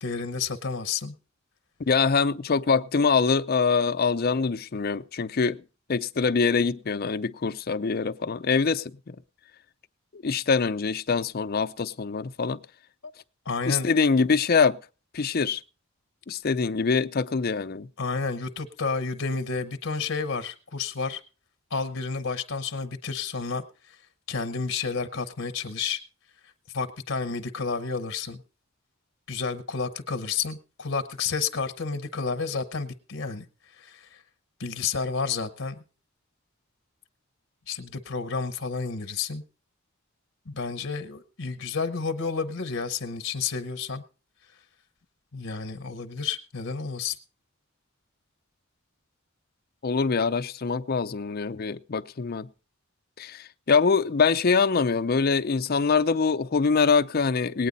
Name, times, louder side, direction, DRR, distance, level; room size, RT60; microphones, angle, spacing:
voice 1, 0.0-1.1 13.5-13.9 18.0-21.2 21.7-23.6 24.3-26.0 26.7-28.4 29.3-33.4 33.8-34.2 34.6-35.8 37.7-39.4 40.5-44.0 45.3-47.2, left 5 dB, 70° left, 1.0 m, -30 dB
voice 2, 1.9-5.6 5.9-9.2 10.1-12.6 13.7-14.8 15.1-15.6 16.3-17.9 49.8-52.5 53.2-57.7, left 5 dB, 50° left, 0.5 m, -24 dB
19.0 x 9.2 x 4.1 m
head